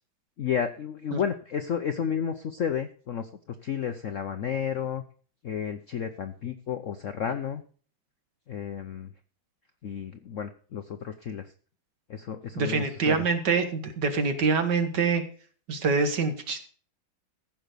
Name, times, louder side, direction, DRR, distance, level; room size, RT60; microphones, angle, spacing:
voice 1, 0.4-5.0 5.4-7.6 8.5-9.1 9.8-11.5 12.1-13.2, left 8 dB, 60° left, 9 dB, 0.8 m, -32 dB
voice 2, 12.6-15.2 15.7-16.6, right 4 dB, 60° right, 8 dB, 2.1 m, -25 dB
15.0 x 6.0 x 6.7 m, 0.43 s
omnidirectional pair, 2.1 m